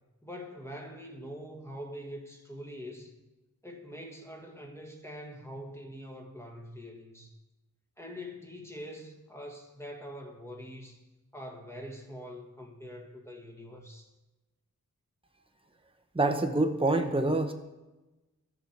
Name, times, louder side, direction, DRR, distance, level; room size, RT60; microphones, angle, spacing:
voice 1, 0.2-3.1 3.6-7.3 8.0-11.0 11.3-14.1, equal, 10° left, 1 dB, 1.7 m, -44 dB
voice 2, 16.1-17.5, right 2 dB, 15° right, 5 dB, 1.0 m, -26 dB
13.0 x 6.8 x 4.6 m, 1.1 s
wide cardioid pair, 65°, 35 cm